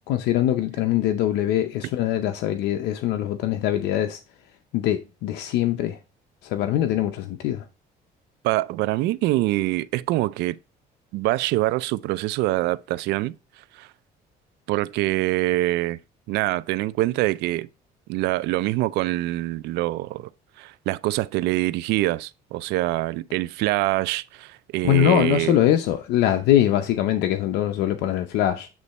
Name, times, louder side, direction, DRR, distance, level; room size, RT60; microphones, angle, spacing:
voice 1, 0.0-4.2 4.7-6.0 6.4-7.7 24.8-28.7, left 12 dB, 85° left, 0.6 m, -22 dB
voice 2, 8.4-10.6 11.1-13.3 13.7-13.9 14.7-16.0 16.3-17.7 18.1-20.3 20.6-25.6, right 17 dB, 90° right, 0.4 m, -24 dB
8.3 x 3.1 x 4.1 m
cardioid pair, 110°, 17 cm